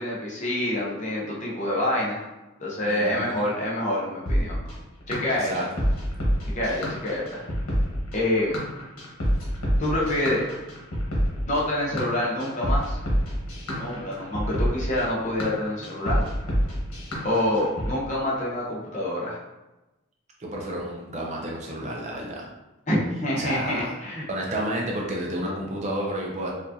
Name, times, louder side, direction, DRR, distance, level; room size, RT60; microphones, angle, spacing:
voice 1, 0.0-2.3 2.6-4.6 5.1-5.5 6.5-7.5 8.1-8.5 9.8-10.5 11.5-13.0 13.8-16.3 17.2-19.4 22.9-24.2, left 1 dB, 35° left, -4 dB, 0.8 m, -26 dB
voice 2, 2.9-3.5 5.3-5.7 20.4-22.5 23.4-23.8 24.3-26.5, right 1 dB, 30° right, -2 dB, 0.5 m, -31 dB
sound 1, 4.3-17.9, equal, 80° left, 1.3 m, -27 dB
4.6 x 2.5 x 2.7 m, 1.0 s
head